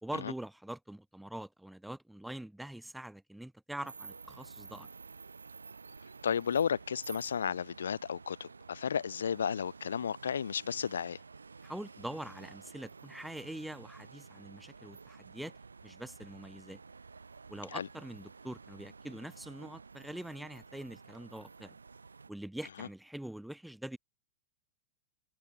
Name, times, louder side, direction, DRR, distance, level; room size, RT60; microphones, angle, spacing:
voice 1, 0.0-4.9 11.6-15.5 15.8-16.8 17.5-21.7 22.3-24.0, right 1 dB, 5° right, 0.6 m, -44 dB
sound 1, 3.8-22.3, right 4 dB, 75° right, 1.6 m, -52 dB
voice 2, 6.2-11.2 17.7-17.9, left 7 dB, 70° left, 0.7 m, -33 dB
figure-of-eight pair, 90°, 0 cm